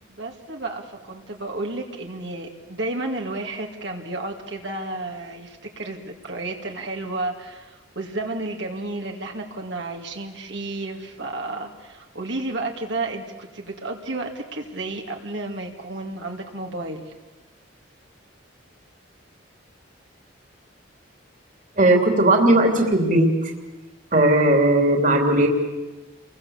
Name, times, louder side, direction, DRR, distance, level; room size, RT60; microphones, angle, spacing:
voice 1, 0.0-17.1, right 2 dB, 65° right, 2 dB, 2.4 m, -32 dB
voice 2, 21.8-23.5 24.1-25.5, right 1 dB, 40° right, 2 dB, 3.0 m, -17 dB
29.5 x 23.0 x 7.2 m, 1.1 s
head